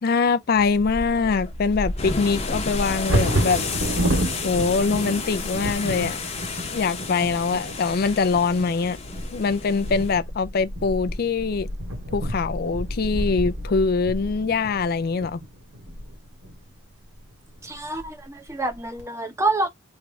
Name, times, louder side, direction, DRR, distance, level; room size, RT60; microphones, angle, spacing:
voice 1, 0.0-3.6 4.4-6.2 6.7-9.0 9.3-11.7 12.1-15.4, left 4 dB, 50° left, 0.4 m, -23 dB
sound 1, 0.5-10.2, left 5 dB, 35° left, 0.9 m, -33 dB
Bird vocalization bird call bird song / Wind / Thunder, 0.7-16.6 17.2-17.3 17.6-18.0 18.5-19.0, right 1 dB, 85° right, 2.0 m, -30 dB
voice 2, 17.6-19.7, right 2 dB, 15° right, 0.8 m, -27 dB
3.6 x 3.2 x 3.5 m
head